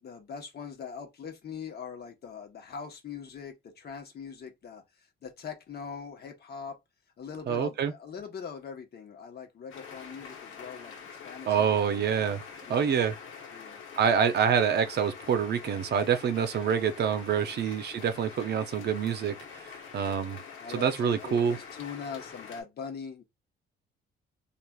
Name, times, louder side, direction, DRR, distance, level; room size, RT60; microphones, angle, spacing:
voice 1, 0.0-4.8 5.2-6.8 7.2-12.0 12.7-13.0 13.5-13.8 17.5-17.6 20.6-23.2, left 6 dB, 55° left, 1.1 m, -42 dB
voice 2, 7.5-7.9 11.5-12.4 12.7-13.2 14.0-20.4 20.7-21.6, right 7 dB, 55° right, 0.6 m, -26 dB
sound 1, 9.7-22.6, left 6 dB, 85° left, 1.0 m, -45 dB
3.2 x 2.4 x 2.3 m
cardioid pair, 90°, 20 cm